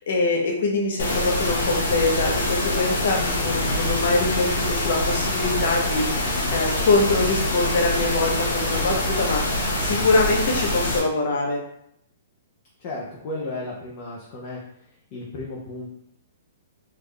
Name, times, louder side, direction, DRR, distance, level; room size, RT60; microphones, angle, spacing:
voice 1, 0.0-9.4 9.8-11.6, left 3 dB, 55° left, 0 dB, 0.8 m, -23 dB
sound 1, 1.0-11.0, left 1 dB, 80° left, 1.0 m, -25 dB
voice 2, 12.8-14.6 15.1-15.9, left 2 dB, 30° left, -3 dB, 0.5 m, -34 dB
3.5 x 2.4 x 3.2 m, 0.73 s
hypercardioid pair, 180°, 0 cm